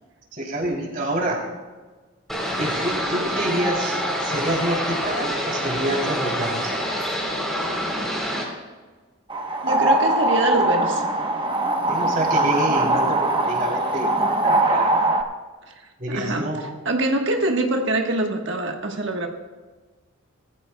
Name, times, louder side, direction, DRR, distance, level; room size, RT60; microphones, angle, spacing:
voice 1, 0.3-1.4 2.6-6.8 11.9-15.0 16.0-16.7, right 1 dB, 40° right, 0 dB, 3.1 m, -27 dB
sound 1, 2.3-8.4, equal, ahead, 3.5 m, -26 dB
sound 2, 9.3-15.2, right 2 dB, 25° right, 0.9 m, -21 dB
voice 2, 9.6-11.0 15.7-15.8 16.1-16.5 16.8-19.3, right 2 dB, 60° right, 3 dB, 1.3 m, -24 dB
19.0 x 14.0 x 2.3 m, 1.3 s
head